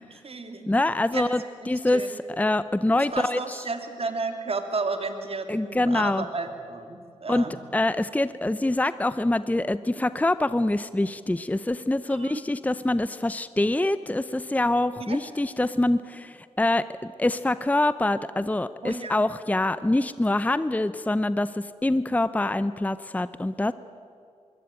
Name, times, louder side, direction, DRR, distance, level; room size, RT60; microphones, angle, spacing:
voice 1, 0.1-0.7 1.1-1.3 1.9-2.2 3.0-7.6 12.1-12.4 15.0-15.2 18.8-19.2, right 3 dB, 50° right, 6 dB, 2.9 m, -32 dB
voice 2, 0.7-3.6 5.5-6.3 7.3-7.5 7.7-23.7, left 1 dB, 10° left, 14 dB, 0.6 m, -25 dB
22.0 x 17.5 x 9.0 m, 2.5 s
supercardioid pair, 45°, 13 cm